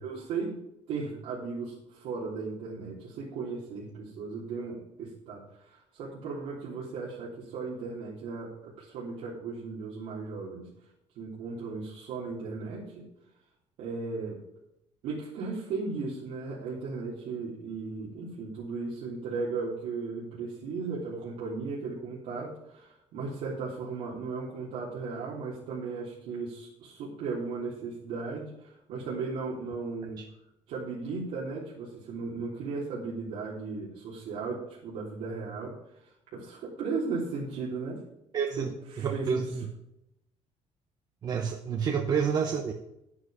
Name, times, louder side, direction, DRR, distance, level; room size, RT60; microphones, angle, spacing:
voice 1, 0.0-0.6 0.9-10.6 11.1-13.0 13.8-14.4 15.0-30.2 30.7-36.0 36.3-38.0 38.6-38.7 38.9-39.4, right 4 dB, 80° right, -6 dB, 3.4 m, -36 dB
voice 2, 38.3-38.7 39.0-39.7 41.2-42.7, right 6 dB, 35° right, 4 dB, 0.9 m, -29 dB
11.0 x 9.7 x 5.1 m, 0.85 s
cardioid pair, 175°, 12 cm